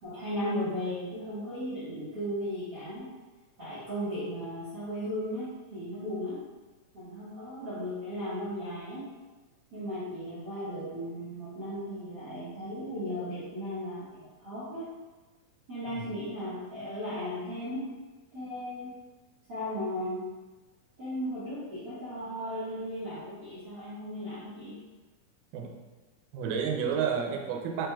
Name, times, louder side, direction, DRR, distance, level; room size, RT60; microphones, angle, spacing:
voice 1, 0.0-3.1 3.6-6.4 6.9-9.1 9.7-14.9 15.7-17.8 18.3-18.9 19.5-20.2 21.0-24.8, equal, 60° right, -13 dB, 1.1 m, -36 dB
voice 2, 26.3-27.9, right 7 dB, 85° right, 2 dB, 2.1 m, -30 dB
5.1 x 3.2 x 2.3 m, 1.2 s
omnidirectional pair, 3.7 m